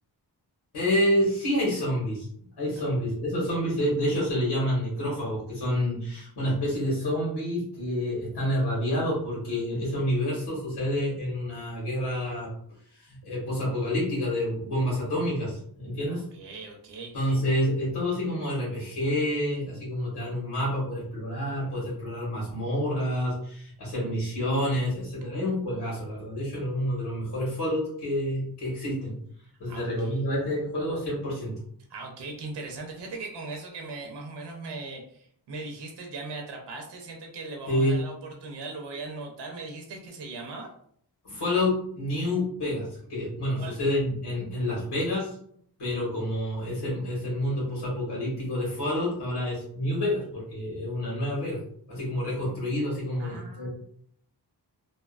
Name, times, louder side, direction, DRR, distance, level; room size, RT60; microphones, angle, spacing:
voice 1, 0.7-2.3 2.6-12.5 12.9-16.2 17.1-29.2 29.6-31.5 37.7-38.0 41.2-45.4 45.8-51.6 51.9-53.7, left 1 dB, 70° left, -6 dB, 1.2 m, -28 dB
voice 2, 16.1-17.3 29.7-30.2 31.9-38.1 38.4-40.7 43.6-43.8 53.2-53.7, right 3 dB, 90° right, 2 dB, 0.6 m, -39 dB
2.6 x 2.2 x 2.4 m, 0.65 s
wide cardioid pair, 135°, 41 cm